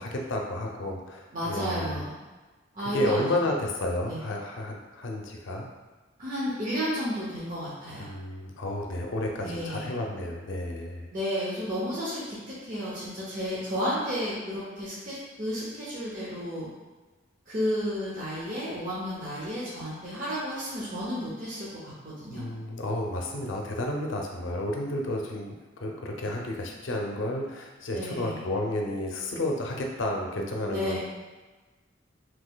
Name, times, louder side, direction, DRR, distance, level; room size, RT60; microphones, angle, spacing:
voice 1, 0.0-2.0 2.9-5.7 8.0-11.1 22.3-31.0, left 1 dB, 90° left, 1 dB, 0.5 m, -31 dB
voice 2, 1.3-2.1 2.7-3.2 4.1-4.2 6.2-8.1 9.4-9.9 11.1-16.7 17.5-22.5 27.9-28.5 30.7-31.0, equal, 45° right, -8 dB, 0.7 m, -32 dB
3.8 x 2.9 x 2.2 m, 1.2 s
head